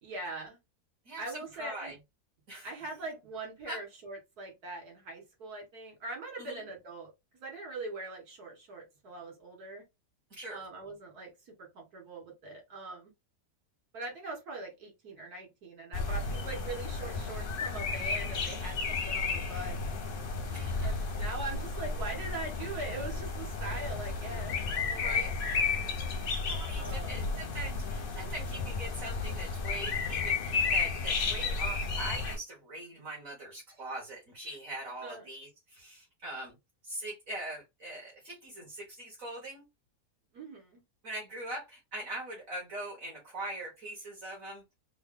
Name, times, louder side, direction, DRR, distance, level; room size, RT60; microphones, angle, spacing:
voice 1, 0.0-0.6 1.2-1.9 2.6-9.8 10.5-13.1 13.9-19.8 20.8-25.4 26.8-27.2 35.0-35.3 40.3-40.8, right 2 dB, 75° right, 2.1 m, -42 dB
voice 2, 1.0-1.9 2.5-2.7 3.7-3.8 6.4-6.6 10.4-10.6 20.5-20.9 25.0-25.3 26.4-36.5 36.8-39.6 41.0-44.6, right 1 dB, 60° right, 1.7 m, -42 dB
sound 1, 15.9-32.4, left 4 dB, 50° left, 0.7 m, -33 dB
3.9 x 2.0 x 3.7 m
omnidirectional pair, 1.6 m